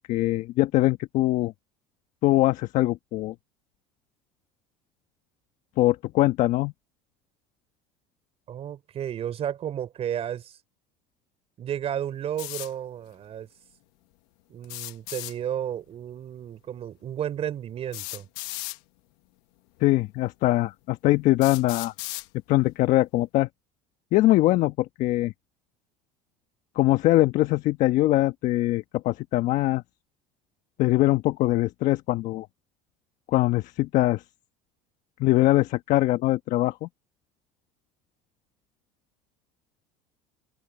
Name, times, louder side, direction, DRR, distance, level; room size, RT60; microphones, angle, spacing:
voice 1, 0.1-1.5 2.2-3.3 5.8-6.7 19.8-21.9 22.5-23.5 24.1-25.3 26.7-29.8 30.8-32.5 33.3-34.2 35.2-36.9, left 17 dB, 60° left, 1.3 m, -22 dB
voice 2, 8.5-10.6 11.6-13.5 14.5-18.3, right 10 dB, 45° right, 4.1 m, -32 dB
sound 1, 12.4-12.7 14.6-15.3 16.8-16.9 17.9-18.8 19.8-19.9 20.6-20.7 21.4-22.3, left 22 dB, 80° left, 1.6 m, -36 dB
open air
supercardioid pair, 100°, 14 cm